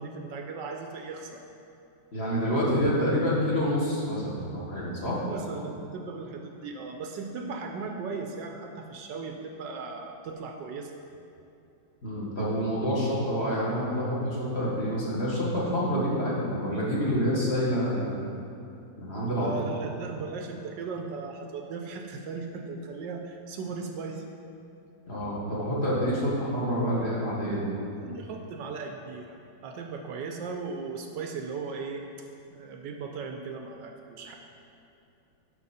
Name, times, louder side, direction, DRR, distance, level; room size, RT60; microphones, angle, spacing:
voice 1, 0.0-1.4 4.8-10.9 19.3-24.2 28.0-32.0 32.5-34.3, right 4 dB, 75° right, 3 dB, 1.2 m, -37 dB
voice 2, 2.1-5.2 12.0-18.3 19.0-19.8 25.1-27.7, equal, 35° left, -7 dB, 1.9 m, -27 dB
12.0 x 5.2 x 4.2 m, 2.7 s
omnidirectional pair, 2.1 m